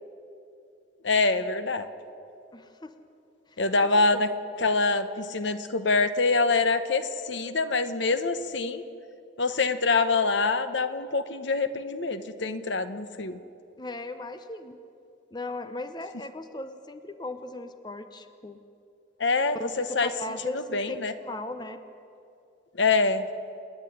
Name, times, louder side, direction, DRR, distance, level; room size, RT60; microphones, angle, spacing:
voice 1, 1.0-1.9 3.6-4.3 4.6-8.8 9.4-13.4 19.2-20.1 20.7-21.1 22.8-23.2, left 3 dB, 70° left, 11 dB, 1.0 m, -25 dB
voice 2, 2.5-2.9 3.5-4.3 13.8-14.8 15.3-18.6 19.5-21.8, left 2 dB, 20° left, 9 dB, 0.8 m, -38 dB
28.0 x 9.9 x 9.9 m, 2.7 s
head